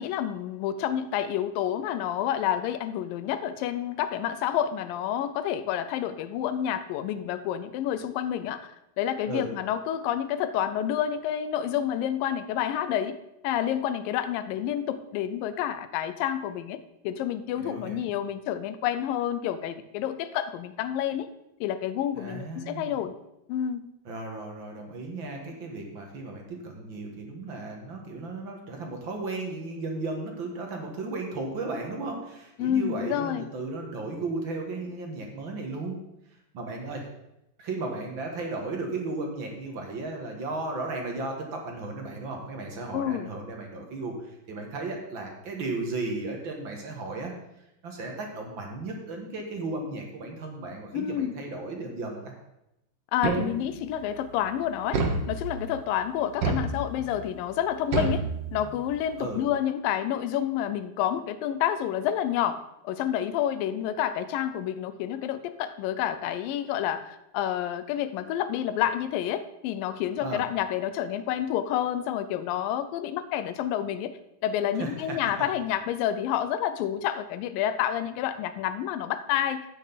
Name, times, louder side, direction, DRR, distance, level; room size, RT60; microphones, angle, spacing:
voice 1, 0.0-13.2 13.4-21.3 21.6-23.1 23.5-23.9 32.6-33.5 42.9-43.3 50.9-51.3 53.1-55.0 55.3-58.2 58.5-62.6 62.8-74.1 74.4-79.7, left 10 dB, 85° left, 12 dB, 2.4 m, -29 dB
voice 2, 17.6-18.1 22.2-22.9 24.1-36.0 36.5-37.1 37.6-47.3 47.8-52.4 59.2-59.4 70.2-70.4 74.8-75.3, right 3 dB, 45° right, 2 dB, 1.8 m, -35 dB
sound 1, 53.2-53.9 54.9-55.8 56.4-57.2 57.9-58.9, right 3 dB, 80° right, 1.0 m, -29 dB
13.0 x 9.1 x 4.1 m, 0.85 s
omnidirectional pair, 3.9 m